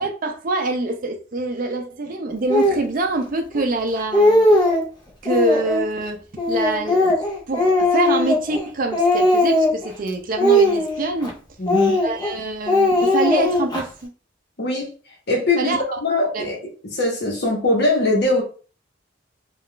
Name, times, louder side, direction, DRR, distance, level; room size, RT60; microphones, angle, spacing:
voice 1, 0.0-4.5 5.2-6.2 6.5-7.1 7.5-11.4 12.0-14.1 15.6-16.0 16.3-16.4, right 2 dB, 45° right, 0.5 m, -25 dB
Speech, 2.5-2.8 3.5-3.6 4.0-4.9 5.2-5.9 6.4-8.7 8.9-9.9 10.4-11.3 11.7-12.3 12.7-13.8, left 1 dB, 20° left, 0.7 m, -18 dB
voice 2, 11.6-12.0 14.6-14.9 15.3-16.6 16.9-18.4, left 2 dB, 60° left, 1.0 m, -21 dB
2.4 x 2.3 x 3.6 m
head